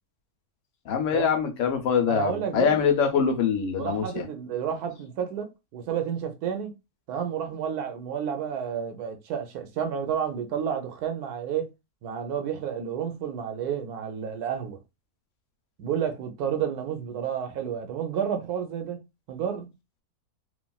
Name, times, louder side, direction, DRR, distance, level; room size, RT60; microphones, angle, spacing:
voice 1, 0.9-4.2, left 6 dB, 65° left, 0.9 m, -24 dB
voice 2, 2.1-2.8 3.8-6.7 7.1-11.7 12.0-14.8 15.8-19.0 19.3-19.7, right 8 dB, 90° right, 1.2 m, -30 dB
3.2 x 2.3 x 2.2 m
omnidirectional pair, 1.6 m